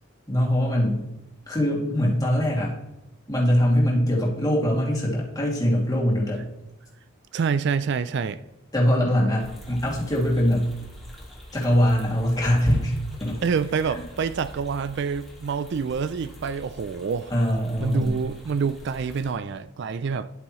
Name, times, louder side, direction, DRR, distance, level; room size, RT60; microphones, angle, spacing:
voice 1, 0.3-1.0 1.5-2.8 3.3-6.4 8.7-10.6 11.5-13.4 13.9-14.0 17.3-18.1, equal, 20° left, 2.5 m, -22 dB
voice 2, 7.3-8.4 13.4-17.3 17.8-20.3, right 5 dB, 55° right, 0.4 m, -27 dB
sound 1, 9.4-19.3, equal, ahead, 2.3 m, -44 dB
10.5 x 8.3 x 3.1 m
head